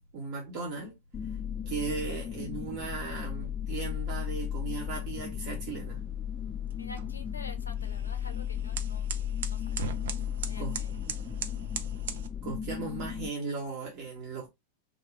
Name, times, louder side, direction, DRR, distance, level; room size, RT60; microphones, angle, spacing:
voice 1, 0.1-0.9 1.7-6.0 10.6-10.7 12.4-14.5, right 4 dB, 45° right, 0.8 m, -37 dB
sound 1, 1.1-13.3, left 9 dB, 20° left, 0.3 m, -35 dB
sound 2, 5.5-12.3, right 7 dB, 60° right, 0.4 m, -41 dB
voice 2, 6.8-9.1 9.5-9.9 10.4-10.9, left 3 dB, 75° left, 0.5 m, -47 dB
2.5 x 2.2 x 3.2 m
figure-of-eight pair, 90°, 0 cm